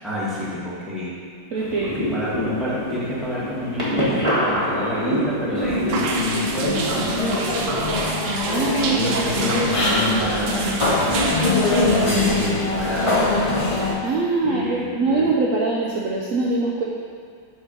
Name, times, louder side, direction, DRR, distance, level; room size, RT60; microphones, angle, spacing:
voice 1, 0.0-1.2 1.8-7.7 8.9-13.5 14.4-15.2, left 1 dB, ahead, -9 dB, 1.7 m, -28 dB
sound 1, 1.5-7.3, equal, 15° right, 1.6 m, -26 dB
voice 2, 1.5-2.0 8.4-9.3 14.0-16.8, right 3 dB, 70° right, -3 dB, 0.7 m, -23 dB
sound 2, 5.5-13.9, left 2 dB, 40° left, 0.4 m, -23 dB
sound 3, 5.9-12.5, right 3 dB, 85° right, 1.6 m, -28 dB
7.4 x 3.8 x 6.3 m, 2.1 s
omnidirectional pair, 2.1 m